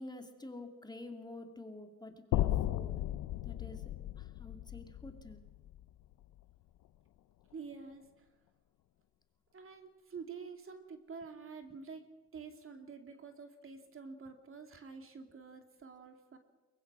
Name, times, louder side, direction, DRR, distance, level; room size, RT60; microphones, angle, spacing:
voice 1, 0.0-3.0 3.4-3.8 4.2-5.4, left 2 dB, 15° left, 5 dB, 2.5 m, -48 dB
sound 1, 2.3-6.5, left 14 dB, 80° left, 0.7 m, -36 dB
voice 2, 7.5-8.3 9.5-12.1 12.3-16.4, right 5 dB, 45° right, 6 dB, 2.6 m, -48 dB
23.0 x 20.5 x 6.2 m, 1.2 s
cardioid pair, 90°, 30 cm